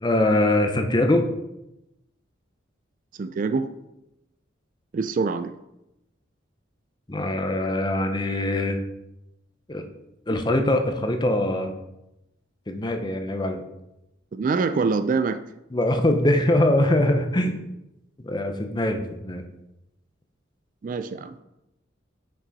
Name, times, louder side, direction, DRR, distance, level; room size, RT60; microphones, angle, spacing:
voice 1, 0.0-1.3 7.1-8.8 9.7-9.8 10.3-11.7 12.7-13.6 15.7-17.6 18.2-19.4, left 1 dB, 20° left, 5 dB, 0.6 m, -22 dB
voice 2, 3.2-3.7 4.9-5.5 14.3-15.4 20.8-21.3, right 4 dB, 40° right, 11 dB, 0.3 m, -25 dB
6.1 x 5.3 x 4.0 m, 0.88 s
head